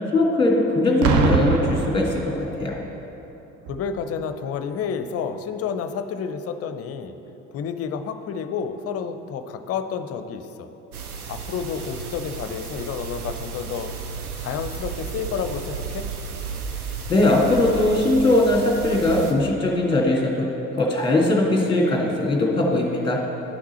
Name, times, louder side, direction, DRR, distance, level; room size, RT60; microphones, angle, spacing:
voice 1, 0.1-2.7 17.1-20.5 20.7-23.2, left 2 dB, 10° left, -2 dB, 1.9 m, -20 dB
Boom, 1.0-2.8 3.7-3.9, right 4 dB, 50° right, 0.8 m, -23 dB
voice 2, 3.7-7.1 7.5-10.7 11.3-13.9 14.4-16.1, left 6 dB, 35° left, 9 dB, 0.6 m, -30 dB
sound 1, 10.9-19.3, right 5 dB, 90° right, 0.6 m, -33 dB
10.5 x 5.9 x 4.2 m, 3.0 s
figure-of-eight pair, 60°, 43 cm